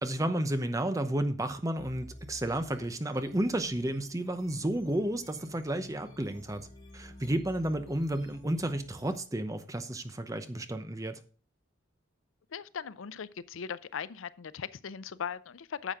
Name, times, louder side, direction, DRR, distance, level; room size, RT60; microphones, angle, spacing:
voice 1, 0.0-6.7 6.9-11.2, right 1 dB, 15° right, 0.8 m, -32 dB
sound 1, 1.8-9.2, equal, 20° left, 5.9 m, -51 dB
voice 2, 12.5-15.9, left 7 dB, 90° left, 0.5 m, -39 dB
10.0 x 7.2 x 3.7 m
head